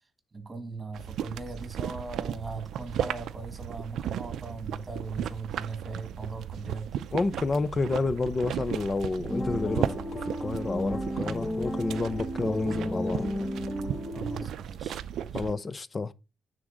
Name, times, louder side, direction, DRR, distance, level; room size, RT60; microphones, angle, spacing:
voice 1, 0.3-7.1 14.1-15.4, right 3 dB, 25° right, 1.7 m, -39 dB
sound 1, 0.9-15.5, right 10 dB, 80° right, 0.4 m, -35 dB
voice 2, 7.1-9.9 10.4-13.3 15.3-16.1, left 3 dB, 35° left, 0.5 m, -29 dB
sound 2, 9.3-14.5, equal, 15° left, 0.9 m, -33 dB
9.6 x 3.9 x 3.8 m
cardioid pair, 90°, 0 cm